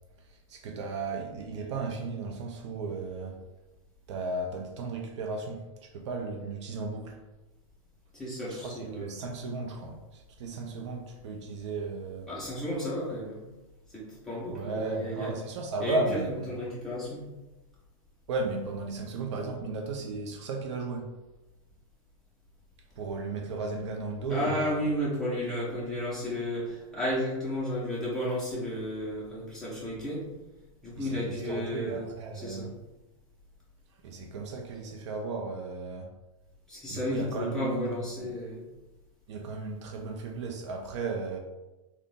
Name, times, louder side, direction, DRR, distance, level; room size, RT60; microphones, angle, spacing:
voice 1, 0.2-3.4 4.1-7.2 8.5-12.3 14.5-16.5 18.3-21.1 23.0-24.8 31.0-32.7 34.0-36.1 36.9-37.9 39.3-41.4, right 3 dB, 55° right, 3 dB, 0.5 m, -35 dB
voice 2, 8.1-9.0 12.3-13.4 13.9-15.3 15.8-17.3 24.3-30.2 30.8-32.0 32.3-32.7 36.7-38.7, left 1 dB, 5° left, -8 dB, 1.1 m, -33 dB
3.9 x 2.1 x 3.5 m, 1.0 s
supercardioid pair, 155°, 18 cm